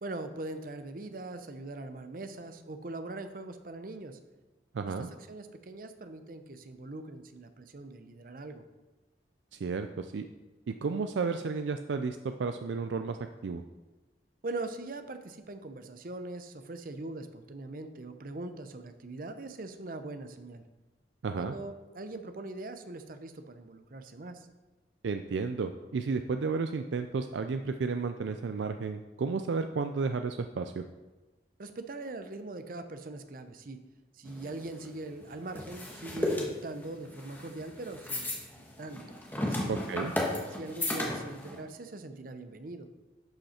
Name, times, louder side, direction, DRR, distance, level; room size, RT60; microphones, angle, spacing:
voice 1, 0.0-4.2 4.9-8.6 14.4-20.6 21.4-24.5 31.6-33.8 34.1-38.4 38.8-39.0 39.5-39.7 40.5-42.9, right 2 dB, 50° right, 9 dB, 0.7 m, -41 dB
voice 2, 4.7-5.1 9.6-10.3 10.7-13.2 13.4-13.6 21.2-21.5 25.0-30.8 39.7-40.1, right 4 dB, 85° right, 8 dB, 0.4 m, -32 dB
sound 1, 34.2-41.6, left 1 dB, 10° left, 1.4 m, -35 dB
11.5 x 5.4 x 4.3 m, 1.2 s
head